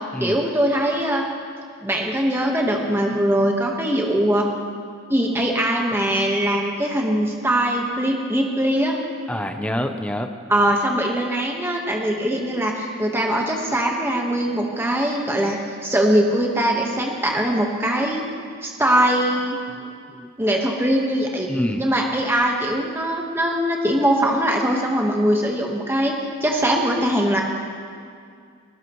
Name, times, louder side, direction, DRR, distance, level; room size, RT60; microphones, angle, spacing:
voice 1, 0.2-1.2 1.8-4.4 5.1-8.9 10.5-18.2 18.6-19.6 20.4-21.5 21.8-27.4, right 1 dB, 10° right, 0 dB, 1.3 m, -21 dB
voice 2, 9.3-10.3 19.8-20.5 21.5-21.8, equal, 5° left, 6 dB, 0.7 m, -27 dB
21.0 x 18.5 x 3.1 m, 2.2 s
head